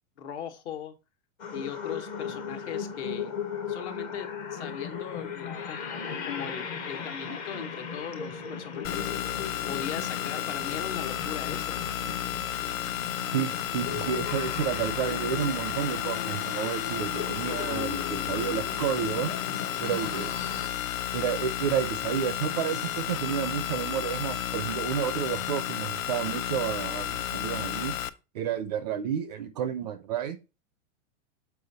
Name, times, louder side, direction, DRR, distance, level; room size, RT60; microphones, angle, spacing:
voice 1, 0.2-0.9 1.5-3.3 3.7-5.8 6.2-9.1 9.7-11.8, left 8 dB, 55° left, 1.4 m, -39 dB
sound 1, 1.4-20.7, left 6 dB, 25° left, 0.6 m, -37 dB
sound 2, 8.8-28.1, left 11 dB, 85° left, 0.7 m, -32 dB
voice 2, 13.3-19.3 19.8-20.4 21.1-27.9 28.3-30.4, right 8 dB, 35° right, 0.4 m, -31 dB
6.8 x 4.6 x 4.0 m
supercardioid pair, 165°, 40 cm